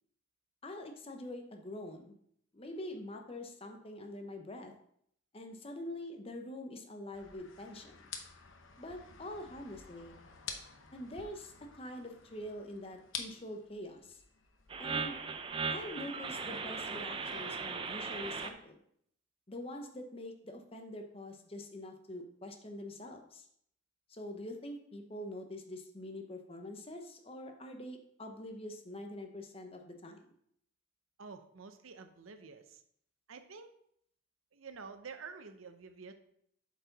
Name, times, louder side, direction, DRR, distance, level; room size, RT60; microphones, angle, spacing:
voice 1, 0.6-2.1 2.5-4.7 5.3-8.1 8.8-10.2 10.9-14.2 14.8-15.2 15.7-18.8 19.5-23.5 24.1-30.3, left 1 dB, 30° left, 4 dB, 0.8 m, -45 dB
sound 1, 7.1-18.5, left 6 dB, 75° left, 0.8 m, -51 dB
sound 2, 14.7-18.5, right 5 dB, 25° right, 0.4 m, -38 dB
voice 2, 31.2-32.8 33.3-33.7 34.5-36.1, right 5 dB, 85° right, 8 dB, 0.7 m, -49 dB
7.7 x 4.7 x 4.0 m, 0.69 s
head